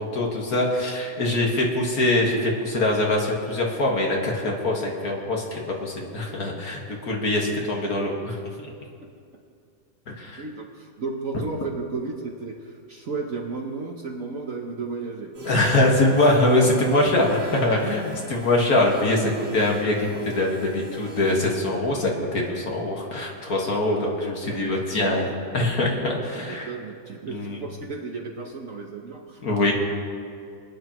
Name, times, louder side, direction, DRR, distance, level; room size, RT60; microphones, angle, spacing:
voice 1, 0.0-8.7 10.1-10.4 15.5-25.3 25.5-26.7 27.3-27.6 29.4-29.7, left 2 dB, 50° left, -1 dB, 2.0 m, -23 dB
voice 2, 10.4-15.5 24.5-25.2 25.9-26.0 26.4-29.4, right 4 dB, 50° right, 1 dB, 1.1 m, -34 dB
sound 1, 15.3-21.4, right 1 dB, 70° right, 4.0 m, -41 dB
24.5 x 9.7 x 3.0 m, 2.4 s
omnidirectional pair, 2.1 m